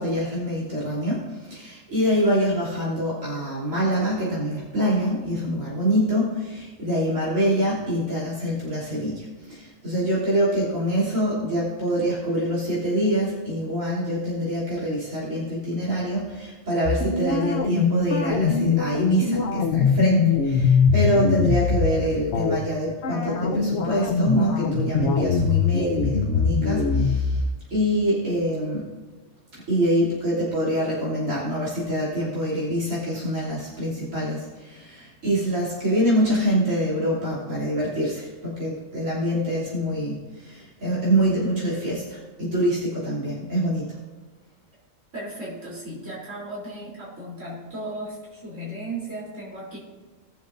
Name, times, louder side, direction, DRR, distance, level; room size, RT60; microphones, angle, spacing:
voice 1, 0.0-27.4 27.7-28.9 29.5-43.9, equal, 90° right, -7 dB, 3.6 m, -25 dB
sound 1, 16.8-21.9 22.3-22.6 23.0-27.4, left 5 dB, 60° left, 1.0 m, -22 dB
voice 2, 45.1-49.8, right 1 dB, 75° right, -6 dB, 3.8 m, -35 dB
19.5 x 7.2 x 2.6 m, 1.3 s
omnidirectional pair, 1.3 m